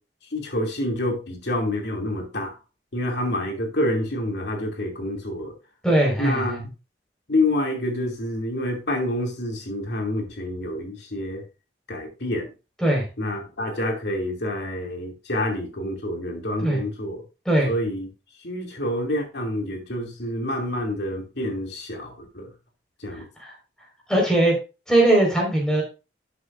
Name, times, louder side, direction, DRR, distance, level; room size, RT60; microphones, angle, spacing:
voice 1, 0.3-2.5 2.9-5.5 6.2-6.7 7.3-11.4 11.9-12.5 13.2-17.2 17.7-18.1 18.4-22.5 23.0-23.3, left 1 dB, 70° left, 2.7 m, -27 dB
voice 2, 5.8-6.6 12.8-13.0 16.6-16.8 17.4-17.7 23.1-23.5 24.1-24.5 24.9-25.8, right 1 dB, 5° left, 4.8 m, -20 dB
12.0 x 7.9 x 2.6 m
head